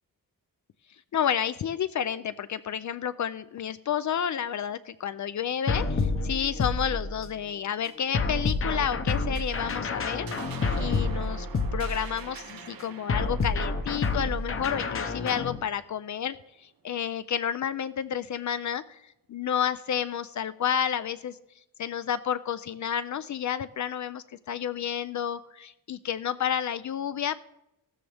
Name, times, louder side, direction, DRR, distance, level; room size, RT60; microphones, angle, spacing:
voice 1, 1.1-11.5 11.7-21.4 21.8-27.4, left 9 dB, 55° left, 13 dB, 0.5 m, -30 dB
sound 1, 5.7-7.4 8.1-12.3 13.1-15.6, left 3 dB, 40° left, 0.9 m, -29 dB
sound 2, 9.3-16.1, right 7 dB, 90° right, 1.1 m, -46 dB
15.0 x 13.5 x 3.4 m, 0.86 s
wide cardioid pair, 175°, 34 cm